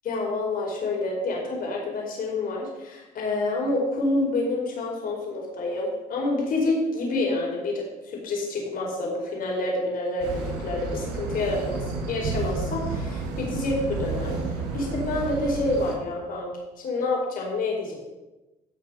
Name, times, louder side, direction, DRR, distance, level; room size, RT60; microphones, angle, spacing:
voice 1, 0.0-16.5 16.8-17.9, left 2 dB, 55° left, -1 dB, 4.7 m, -28 dB
sound 1, 10.2-15.9, right 4 dB, 85° right, 4.1 m, -31 dB
16.5 x 6.0 x 5.5 m, 1.1 s
cardioid pair, 110°, 17 cm